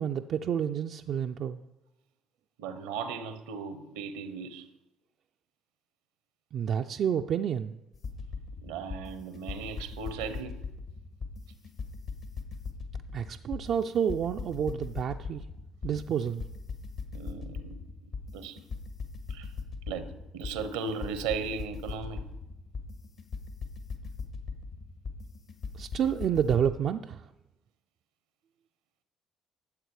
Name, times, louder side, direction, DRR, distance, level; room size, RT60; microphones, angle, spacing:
voice 1, 0.0-1.6 6.5-7.8 13.1-15.5 15.8-16.4 25.7-27.3, right 8 dB, 60° right, 6 dB, 0.4 m, -29 dB
voice 2, 2.6-4.7 8.6-10.6 17.1-17.8 18.3-18.6 19.3-19.5 19.9-22.2, right 5 dB, 80° right, 12 dB, 0.8 m, -37 dB
sound 1, 7.9-26.8, left 4 dB, 60° left, 1.7 m, -39 dB
12.0 x 7.6 x 4.8 m, 0.96 s
hypercardioid pair, 55°, 0 cm